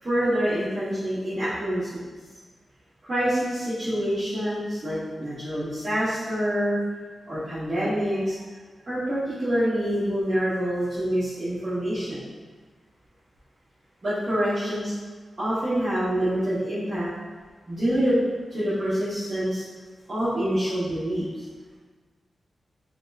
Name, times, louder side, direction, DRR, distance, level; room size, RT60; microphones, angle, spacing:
voice 1, 0.0-1.9 3.0-6.8 7.3-8.4 8.9-12.2 14.0-14.9 15.4-17.1 17.7-18.2 18.5-19.6 20.1-21.3, equal, 30° right, -15 dB, 1.0 m, -26 dB
3.1 x 2.8 x 3.4 m, 1.4 s
wide cardioid pair, 170°, 0 cm